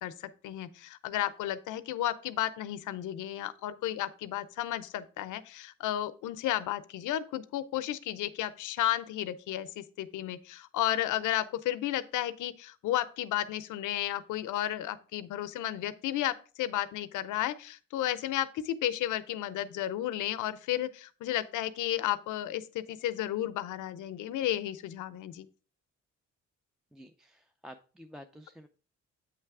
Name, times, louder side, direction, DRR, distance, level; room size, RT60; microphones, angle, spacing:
voice 1, 0.0-25.5, left 13 dB, 80° left, 14 dB, 0.6 m, -33 dB
voice 2, 26.9-28.7, equal, ahead, 5 dB, 0.4 m, -50 dB
8.2 x 3.3 x 4.7 m, 0.37 s
cardioid pair, 90°, 30 cm